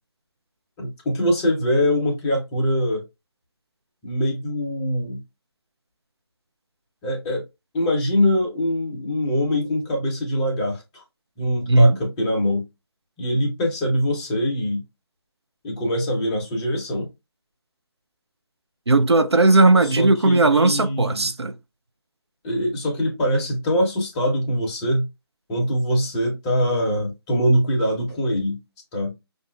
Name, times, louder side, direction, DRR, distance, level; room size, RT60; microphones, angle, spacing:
voice 1, 0.8-3.0 4.0-5.2 7.0-7.4 7.7-11.0 11.4-12.6 13.2-14.8 15.6-17.1 19.8-21.2 22.4-25.1 25.5-28.6 28.9-29.1, equal, 15° left, 0.8 m, -23 dB
voice 2, 11.7-12.0 18.9-21.5, right 2 dB, 80° right, 0.5 m, -16 dB
5.3 x 2.6 x 2.3 m
figure-of-eight pair, 150°, 14 cm